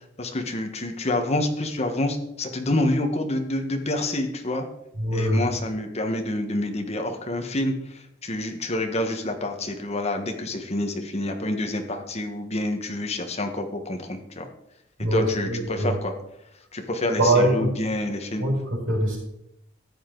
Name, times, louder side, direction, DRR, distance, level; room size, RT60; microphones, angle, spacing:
voice 1, 0.2-4.7 5.1-7.7 8.2-14.4 15.1-16.1 16.7-18.4, left 1 dB, 35° left, 5 dB, 1.4 m, -27 dB
voice 2, 5.0-5.4 15.0-15.9 17.2-17.7 18.4-18.5 18.9-19.2, right 1 dB, 85° right, -1 dB, 5.0 m, -22 dB
13.5 x 8.8 x 3.9 m, 0.81 s
head